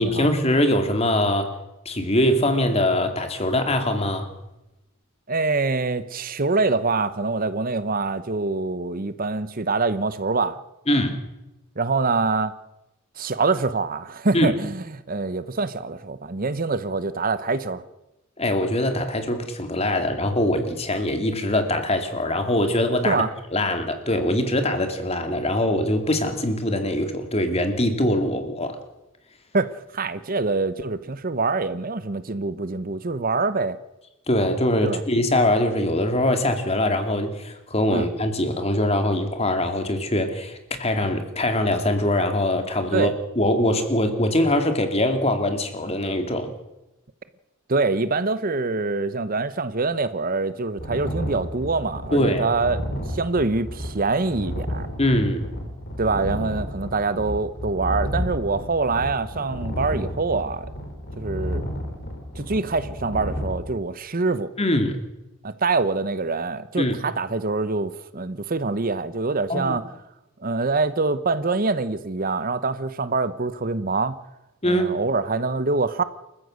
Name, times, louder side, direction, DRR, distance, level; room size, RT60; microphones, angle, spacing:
voice 1, 0.0-1.6 1.9-4.3 10.9-11.2 14.3-14.5 18.4-23.2 23.5-28.8 34.3-43.1 43.4-46.5 52.1-52.5 55.0-55.5 64.6-65.0 66.8-67.0 69.5-69.8 74.6-75.0, left 1 dB, 30° left, 2.4 m, -22 dB
voice 2, 5.3-10.6 11.8-12.5 13.2-17.8 23.0-23.3 29.5-33.8 34.8-35.0 37.9-38.1 42.9-43.1 47.7-52.8 53.1-54.9 56.0-60.7 61.2-61.7 62.3-64.5 65.4-69.8 70.4-74.2 74.6-76.0, right 3 dB, 40° right, 0.9 m, -25 dB
sound 1, 50.8-63.5, equal, 50° left, 3.9 m, -32 dB
29.0 x 14.5 x 6.5 m
head